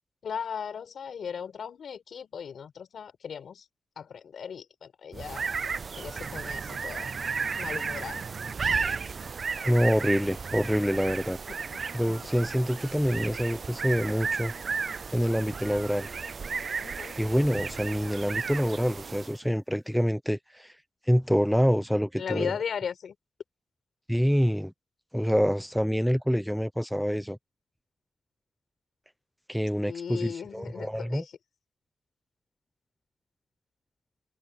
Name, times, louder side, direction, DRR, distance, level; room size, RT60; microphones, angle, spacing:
voice 1, 0.2-3.6 4.0-5.4 6.0-7.1 7.6-8.3 11.7-12.3 16.8-17.2 22.2-23.1 29.9-31.3, left 7 dB, 70° left, 4.7 m, -37 dB
sound 1, 5.1-19.4, right 5 dB, 45° right, 0.4 m, -34 dB
voice 2, 9.6-11.4 11.9-14.5 15.1-16.1 17.2-20.7 21.1-22.5 24.1-24.7 25.1-27.4 29.5-31.2, equal, ahead, 0.8 m, -26 dB
wide cardioid pair, 145°, 0 cm